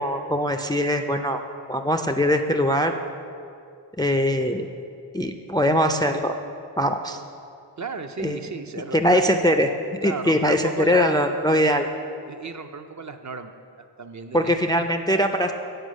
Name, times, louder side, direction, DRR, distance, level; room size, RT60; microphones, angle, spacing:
voice 1, 0.0-1.4 1.7-2.9 4.0-4.7 5.1-6.3 6.8-7.2 8.2-8.4 8.9-9.7 10.0-11.9 14.3-15.5, equal, 10° left, 5 dB, 0.3 m, -21 dB
voice 2, 7.8-9.2 10.0-11.2 12.3-13.5 14.0-14.5, right 4 dB, 40° right, 7 dB, 0.5 m, -33 dB
8.0 x 4.6 x 6.3 m, 2.5 s
cardioid pair, 40°, 44 cm